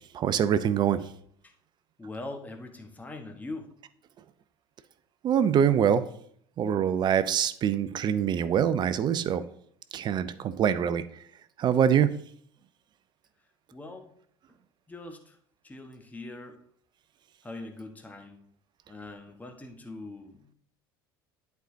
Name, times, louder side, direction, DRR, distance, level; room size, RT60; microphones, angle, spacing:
voice 1, 0.1-1.0 5.2-6.0 6.6-9.4 9.9-11.0 11.6-12.2, right 8 dB, 35° right, 15 dB, 0.5 m, -24 dB
voice 2, 2.0-3.7 13.7-14.1 14.9-15.4 15.6-16.6 17.4-18.4 18.9-20.5, left 2 dB, 10° left, 4 dB, 1.2 m, -42 dB
11.0 x 4.6 x 2.7 m, 0.64 s
figure-of-eight pair, 65°, 12 cm